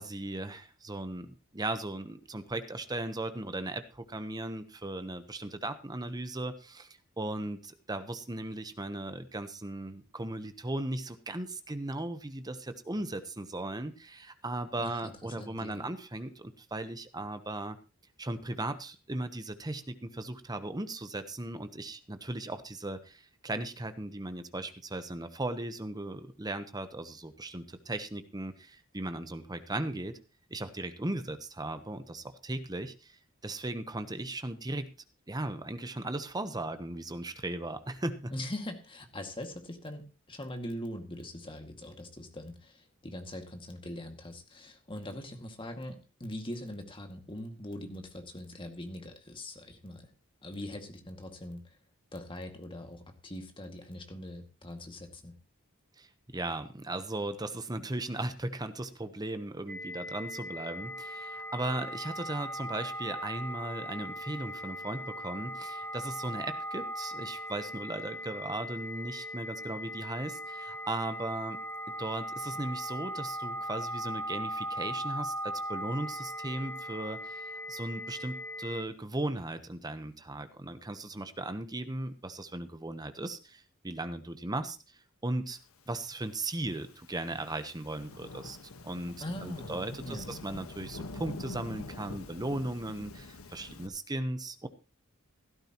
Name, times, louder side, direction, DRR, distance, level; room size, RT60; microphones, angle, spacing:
voice 1, 0.0-17.8 18.2-30.2 30.5-33.2 33.4-34.9 35.3-38.3 56.0-56.1 56.3-71.6 72.0-84.8 85.2-85.6 85.9-88.6 88.8-94.7, right 2 dB, 20° right, 10 dB, 1.0 m, -37 dB
voice 2, 14.8-15.9 38.3-50.1 50.4-51.8 52.1-55.4 89.2-90.3, left 1 dB, 25° left, 5 dB, 2.1 m, -42 dB
sound 1, 59.7-78.8, equal, 5° left, 2.4 m, -39 dB
Thunderstorm / Rain, 86.2-93.9, left 2 dB, 75° left, 1.4 m, -45 dB
16.0 x 13.0 x 3.0 m, 0.32 s
head